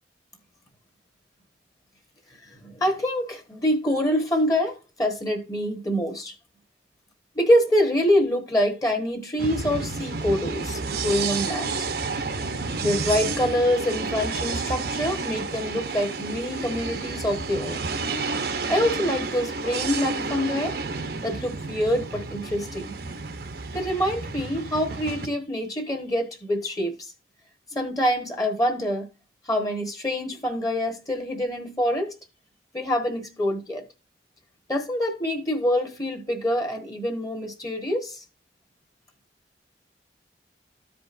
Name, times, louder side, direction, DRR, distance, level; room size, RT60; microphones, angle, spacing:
voice 1, 2.6-6.3 7.3-11.9 12.8-17.9 18.7-20.8 21.2-23.0 23.7-27.1 27.7-29.1 29.5-32.1 32.7-33.8 34.7-38.2, equal, 20° left, 1.2 m, -25 dB
sound 1, 9.4-25.3, right 4 dB, 60° right, 0.8 m, -30 dB
14.0 x 5.0 x 2.5 m
head